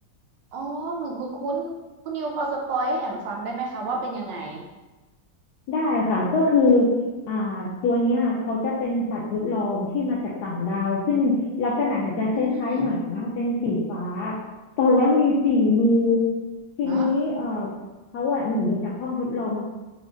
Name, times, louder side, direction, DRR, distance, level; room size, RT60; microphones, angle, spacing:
voice 1, 0.5-1.8 2.0-4.7 12.0-12.9 16.8-17.1, right 2 dB, 70° right, 0 dB, 1.3 m, -30 dB
voice 2, 5.7-6.9 7.3-14.4 14.8-16.3 16.8-17.7 18.1-19.6, left 2 dB, 70° left, -6 dB, 1.1 m, -23 dB
4.8 x 2.1 x 3.8 m, 1.2 s
omnidirectional pair, 2.1 m